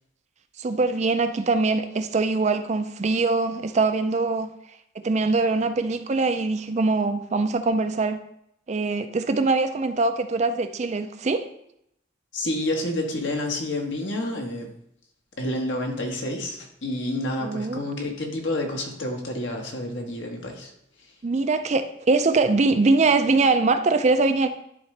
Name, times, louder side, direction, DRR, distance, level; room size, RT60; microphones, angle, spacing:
voice 1, 0.6-4.5 5.0-8.2 8.7-11.4 17.4-17.8 21.2-24.5, right 3 dB, 35° right, 9 dB, 0.4 m, -22 dB
voice 2, 12.3-14.7 15.4-20.7, left 1 dB, 70° left, 1 dB, 1.3 m, -29 dB
11.0 x 3.7 x 3.2 m, 0.76 s
head